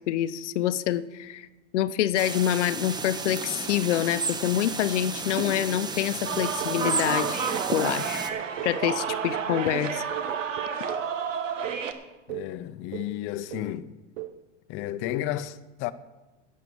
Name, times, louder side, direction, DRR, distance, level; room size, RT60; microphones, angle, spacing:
voice 1, 0.1-1.5 1.7-7.4 7.7-8.2 8.6-10.0, left 12 dB, 70° left, 0.7 m, -26 dB
sound 1, 2.1-8.3, right 4 dB, 10° right, 0.8 m, -32 dB
sound 2, 6.3-7.8 8.3-11.1 11.6-11.9 12.3-12.6 12.9-13.2 13.5-13.8 14.2-14.4, right 15 dB, 60° right, 0.8 m, -38 dB
sound 3, 6.3-11.9, right 6 dB, 85° right, 1.4 m, -31 dB
voice 2, 12.3-14.0 14.7-15.9, left 13 dB, 35° left, 0.6 m, -32 dB
11.0 x 8.3 x 7.0 m
hypercardioid pair, 120°, 37 cm